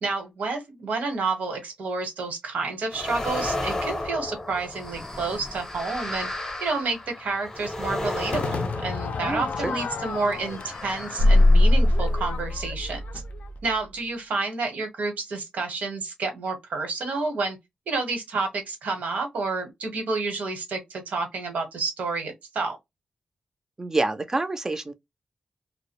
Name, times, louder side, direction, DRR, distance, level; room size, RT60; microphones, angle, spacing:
voice 1, 0.0-6.3 6.6-13.2 13.6-17.6 17.9-22.8, right 3 dB, 85° right, 1.0 m, -29 dB
sound 1, 2.9-9.7 10.3-12.2, left 1 dB, 15° left, 0.6 m, -33 dB
Crowd / Fireworks, 8.3-13.6, left 5 dB, 75° left, 0.4 m, -34 dB
voice 2, 9.2-9.8 23.8-24.9, right 2 dB, 20° right, 0.4 m, -27 dB
sound 2, 11.2-13.6, left 1 dB, 70° right, 0.5 m, -20 dB
2.3 x 2.0 x 2.8 m
wide cardioid pair, 145°, 3 cm